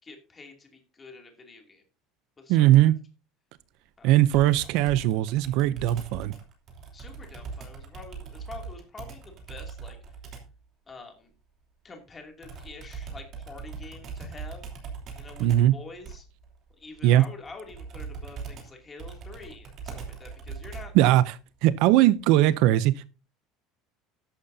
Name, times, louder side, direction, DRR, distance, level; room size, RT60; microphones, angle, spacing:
voice 1, 0.0-1.8 2.4-2.9 4.0-4.2 6.9-10.0 10.9-11.3 11.8-14.7 15.2-16.3 16.7-20.9, left 3 dB, 15° left, 2.6 m, -46 dB
voice 2, 2.5-3.0 4.0-6.3 15.4-15.8 17.0-17.2 20.9-21.3 21.6-23.1, right 14 dB, 55° right, 0.5 m, -20 dB
Computer keyboard, 4.3-10.6 12.4-21.1, right 5 dB, 30° right, 3.0 m, -41 dB
13.5 x 11.0 x 2.7 m
cardioid pair, 180°, 0 cm